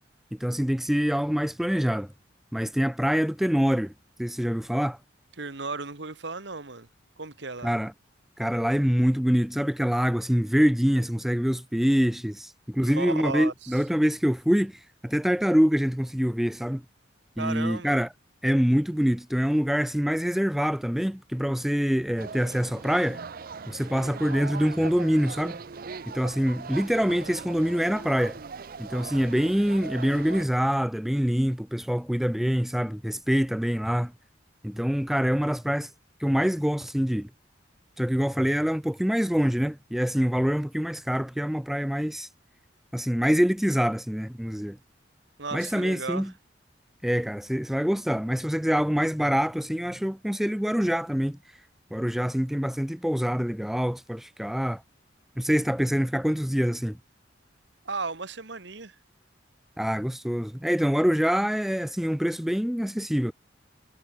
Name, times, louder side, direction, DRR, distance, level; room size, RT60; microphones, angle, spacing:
voice 1, 0.3-2.1 2.5-3.9 4.2-5.0 7.6-7.9 8.4-16.8 17.4-18.1 18.4-23.3 23.7-25.6 26.1-28.4 28.8-34.1 34.6-35.9 36.2-37.3 38.0-42.3 42.9-44.8 45.5-46.3 47.0-51.4 51.9-54.8 55.4-57.0 59.8-63.3, equal, ahead, 0.3 m, -25 dB
voice 2, 5.4-6.9 7.2-7.7 12.8-13.8 17.4-18.0 45.4-46.3 57.9-59.0, right 3 dB, 65° right, 1.6 m, -35 dB
sound 1, 22.2-30.4, right 5 dB, 50° right, 0.6 m, -40 dB
head